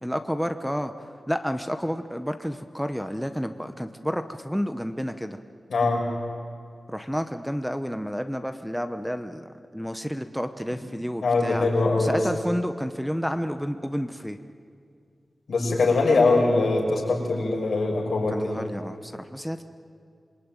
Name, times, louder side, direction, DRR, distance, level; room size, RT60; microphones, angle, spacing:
voice 1, 0.0-5.4 6.9-11.7 12.0-14.4 18.3-19.6, equal, ahead, 7 dB, 1.0 m, -30 dB
voice 2, 5.7-6.1 11.2-12.2 15.5-18.6, left 3 dB, 85° left, -1 dB, 6.6 m, -22 dB
26.5 x 23.0 x 9.2 m, 2.3 s
wide cardioid pair, 115°, 0 cm